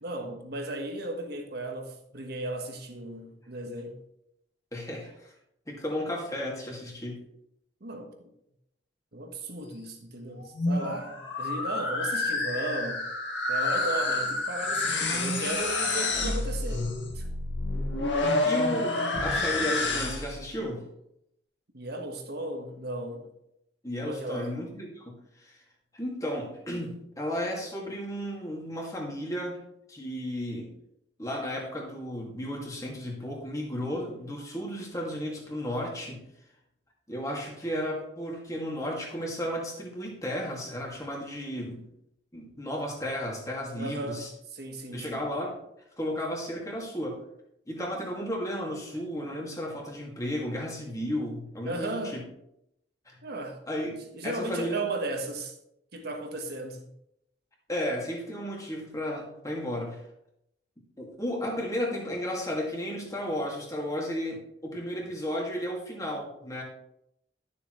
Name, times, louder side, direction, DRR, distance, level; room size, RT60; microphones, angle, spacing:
voice 1, 0.0-4.0 7.8-8.3 9.1-13.1 13.5-17.3 21.7-23.3 24.0-24.5 43.8-45.3 51.6-52.2 53.2-53.6 53.9-55.6 55.9-56.9, right 1 dB, 60° right, 1.4 m, -36 dB
voice 2, 4.7-5.3 5.7-7.2 18.4-20.8 23.8-25.6 25.9-29.6 29.9-30.7 31.2-36.2 37.1-41.8 42.3-44.3 44.9-45.6 46.0-47.2 47.7-52.2 53.1-53.2 53.7-53.9 54.2-54.8 57.7-60.0 61.0-66.6, equal, 20° left, 2.3 m, -33 dB
sound 1, 10.4-20.4, left 2 dB, 80° left, 2.0 m, -29 dB
12.5 x 7.0 x 3.2 m
head